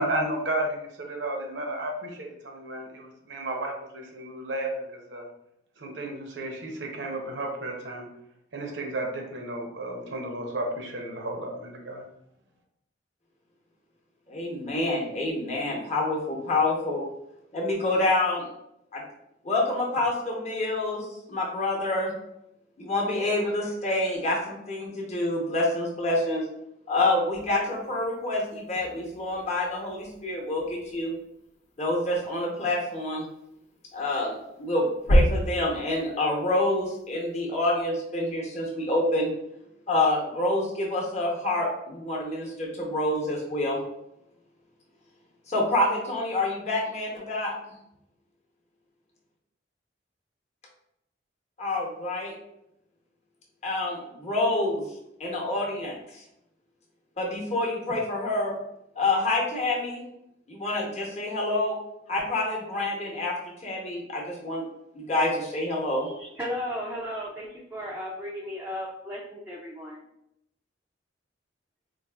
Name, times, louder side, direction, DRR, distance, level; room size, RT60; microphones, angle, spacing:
voice 1, 0.0-5.3 5.8-8.1 8.5-12.0, right 1 dB, 70° right, 2 dB, 0.6 m, -33 dB
voice 2, 14.3-17.1 17.5-18.4 18.9-19.0 19.4-22.1 22.8-26.5 26.9-31.1 31.8-33.3 33.9-39.3 39.9-43.8 45.5-47.5 51.6-52.3 53.6-54.8 55.2-56.2 57.2-58.6 59.0-60.0 60.5-61.8 62.1-63.3 63.6-64.6 64.9-66.1, left 2 dB, 35° left, -2 dB, 0.8 m, -27 dB
sound 1, 27.3-37.4, equal, 80° left, 0.6 m, -32 dB
voice 3, 66.0-70.0, equal, 10° right, -5 dB, 0.4 m, -35 dB
4.0 x 2.4 x 2.3 m, 0.82 s
head